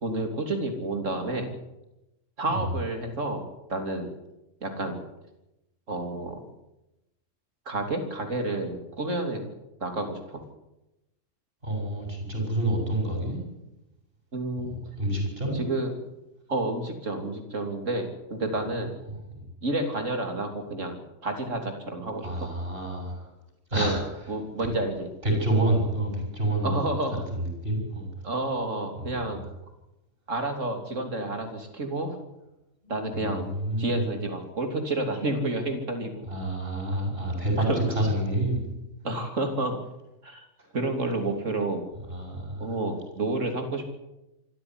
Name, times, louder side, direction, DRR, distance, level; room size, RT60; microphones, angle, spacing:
voice 1, 0.0-1.5 2.4-4.1 4.6-5.0 5.9-6.4 7.7-9.5 9.8-10.4 14.3-14.8 15.5-15.9 16.5-18.9 19.6-22.3 23.7-24.0 24.3-25.1 26.6-27.3 28.2-29.4 30.3-32.2 32.9-33.5 33.8-36.3 37.7-37.8 39.0-39.8 40.2-40.5 40.7-41.9 42.6-43.8, right 2 dB, 80° right, 5 dB, 3.6 m, -30 dB
voice 2, 11.6-13.4 14.6-15.6 19.1-19.5 22.2-23.3 23.7-24.0 24.6-24.7 25.2-27.0 27.3-28.1 28.9-29.4 32.8-34.1 36.2-38.6 40.6-40.7 42.0-42.8, right 1 dB, 50° right, 2 dB, 7.8 m, -28 dB
25.0 x 13.5 x 9.8 m, 0.92 s
omnidirectional pair, 1.3 m